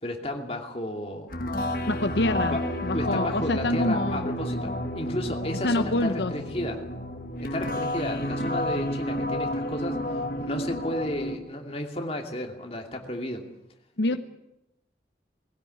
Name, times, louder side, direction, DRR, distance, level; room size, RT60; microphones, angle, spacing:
voice 1, 0.0-1.3 2.4-2.6 2.9-6.8 7.4-10.0 10.4-13.4 14.1-14.2, left 1 dB, 35° left, 3 dB, 2.7 m, -33 dB
sound 1, 1.3-11.4, left 1 dB, 55° left, 1.7 m, -30 dB
voice 2, 1.9-4.3 5.6-6.3 14.0-14.2, left 2 dB, 85° left, 9 dB, 1.0 m, -26 dB
20.0 x 16.0 x 9.4 m, 0.89 s
head